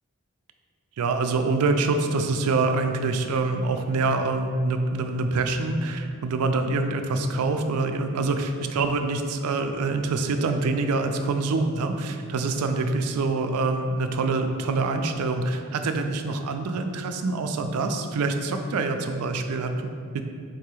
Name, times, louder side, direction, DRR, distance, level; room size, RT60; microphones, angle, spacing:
voice 1, 1.0-20.2, right 3 dB, 90° right, 6 dB, 0.4 m, -25 dB
4.0 x 2.8 x 4.7 m, 2.2 s
head